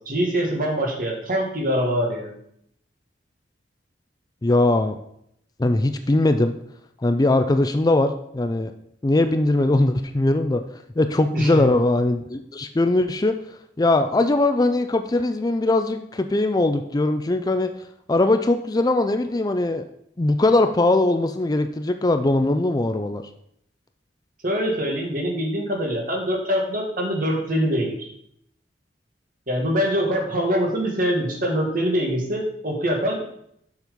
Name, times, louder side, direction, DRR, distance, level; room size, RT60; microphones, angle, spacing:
voice 1, 0.1-2.3 11.3-11.6 24.4-28.1 29.5-33.2, equal, 50° right, 0 dB, 2.0 m, -24 dB
voice 2, 4.4-5.0 5.6-6.5 7.0-8.7 9.0-10.6 11.0-13.3 13.8-17.7 18.1-19.8 20.2-23.2, left 2 dB, 20° left, 8 dB, 0.4 m, -20 dB
7.2 x 6.2 x 5.2 m, 0.73 s
head